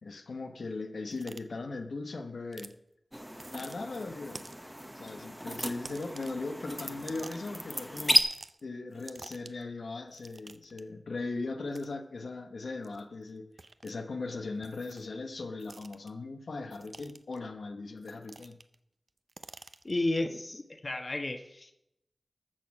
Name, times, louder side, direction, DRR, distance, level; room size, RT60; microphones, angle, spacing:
voice 1, 0.0-2.7 3.5-4.5 5.0-8.1 8.6-13.5 13.8-18.6, left 3 dB, 90° left, 5 dB, 1.0 m, -39 dB
sound 1, 1.1-1.4 2.5-2.7 3.3-3.7 4.3-4.7 5.8-6.4 6.9-7.6 8.1-8.6 8.9-9.6 10.1-10.8 11.7-11.9 12.8-13.0 13.6-13.9 14.6-15.1 15.6-16.1 16.7-17.4 18.0-18.7 19.1-20.0, right 3 dB, 50° right, 0.6 m, -48 dB
sound 2, 3.1-8.2, equal, 5° right, 0.8 m, -33 dB
voice 2, 19.8-21.7, left 2 dB, 40° left, 6 dB, 1.2 m, -32 dB
14.0 x 6.3 x 6.0 m, 0.82 s
wide cardioid pair, 80°, 0 cm